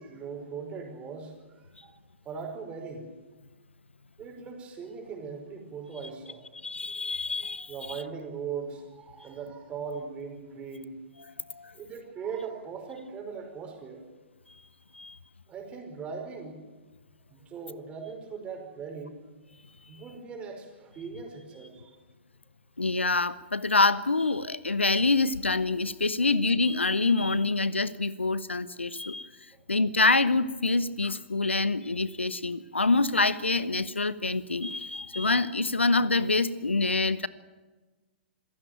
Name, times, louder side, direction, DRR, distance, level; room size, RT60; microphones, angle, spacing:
voice 1, 0.0-3.1 4.2-6.5 7.7-11.0 11.7-14.0 15.5-16.6 17.3-19.2 19.9-22.0 29.5-29.6 34.9-35.0, right 5 dB, 20° right, 3 dB, 5.1 m, -40 dB
voice 2, 6.6-7.7 11.5-11.7 14.9-15.2 22.8-29.3 29.7-37.3, left 3 dB, 80° left, 17 dB, 0.9 m, -26 dB
27.0 x 15.5 x 9.2 m, 1.3 s
figure-of-eight pair, 115°, 6 cm